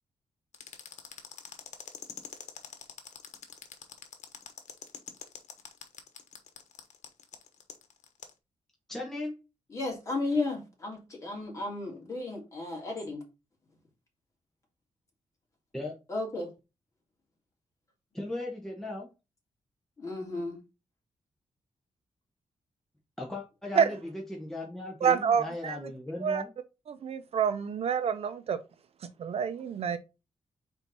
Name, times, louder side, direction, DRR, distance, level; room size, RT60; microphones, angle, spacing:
sound 1, 0.5-8.3, left 8 dB, 80° left, 1.2 m, -45 dB
voice 1, 8.9-9.4 15.7-15.9 18.1-19.1 23.2-26.5, left 2 dB, 5° left, 1.3 m, -37 dB
voice 2, 9.7-13.2 16.1-16.5 20.0-20.6, left 2 dB, 25° left, 2.8 m, -34 dB
voice 3, 25.0-25.8 26.2-26.4 26.9-28.6 29.2-30.0, right 7 dB, 55° right, 0.6 m, -27 dB
4.5 x 4.5 x 5.4 m
wide cardioid pair, 160°, 12 cm